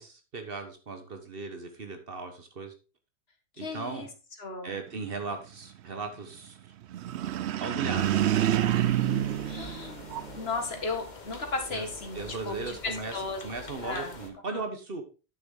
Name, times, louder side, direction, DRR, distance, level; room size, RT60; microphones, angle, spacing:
voice 1, 0.0-2.7 3.6-4.1 4.6-6.6 7.3-8.6 11.7-11.9 12.1-13.1 13.4-15.0, right 4 dB, 60° right, 6 dB, 1.4 m, -37 dB
voice 2, 3.6-4.1 4.4-4.8 7.7-8.1 9.4-13.4 13.8-14.1 14.5-14.7, left 3 dB, 70° left, 5 dB, 2.0 m, -36 dB
sound 1, 6.9-10.5, right 12 dB, 85° right, 0.9 m, -27 dB
sound 2, 7.9-14.3, left 3 dB, 45° left, 1.3 m, -46 dB
8.9 x 6.8 x 3.7 m, 0.32 s
omnidirectional pair, 1.1 m